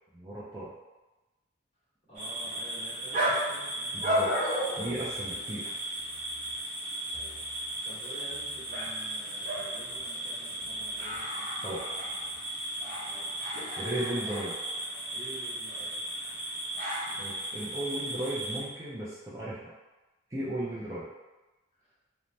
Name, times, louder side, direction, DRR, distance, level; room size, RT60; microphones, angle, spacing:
voice 1, 0.1-0.7 3.9-4.3 4.8-5.6 11.6-11.8 13.8-14.5 17.2-19.6 20.3-21.1, right 1 dB, 15° right, -9 dB, 0.4 m, -35 dB
voice 2, 2.1-4.1 5.2-5.8 7.1-7.4 7.8-12.1 13.0-14.2 15.1-16.4 17.1-17.3 21.8-22.0, right 1 dB, 30° left, -10 dB, 1.1 m, -50 dB
sound 1, 2.1-18.6, right 1 dB, 40° right, 0.8 m, -34 dB
sound 2, 4.8-14.0, equal, 80° right, 1.0 m, -59 dB
2.6 x 2.1 x 3.1 m, 1.1 s
head